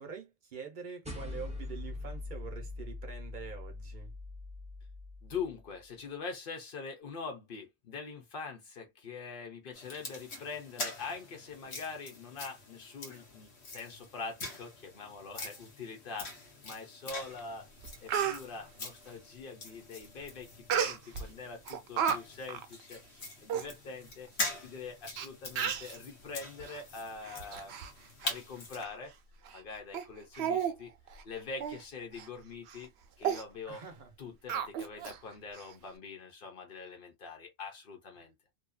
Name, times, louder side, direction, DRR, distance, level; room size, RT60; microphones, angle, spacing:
voice 1, 0.0-4.1 33.7-34.1 38.2-38.3, right 6 dB, 50° right, 0.8 m, -45 dB
sound 1, 1.0-5.7, left 2 dB, 10° right, 0.6 m, -42 dB
voice 2, 5.2-17.7 18.0-24.3 24.6-29.1 29.5-30.9 31.2-32.9 33.2-33.8 34.2-38.3, left 4 dB, 55° left, 1.0 m, -44 dB
sound 2, 9.7-28.8, left 2 dB, 80° left, 1.2 m, -44 dB
Speech, 17.4-17.5 17.8-18.4 20.7-21.3 21.7-22.2 22.5-22.7 23.2-23.3 23.5-23.7 24.4-24.5 25.2-25.3 25.6-25.9 26.6-26.8 27.2-27.9 28.2-28.4 28.8-28.9 29.5-29.6 29.9-30.1 30.4-30.8 31.1-31.2 31.6-31.8 32.2-32.3 32.7-32.9 33.2-33.4 34.5-35.2 35.5-35.6, right 8 dB, 80° right, 0.8 m, -33 dB
2.6 x 2.3 x 2.2 m
omnidirectional pair, 1.1 m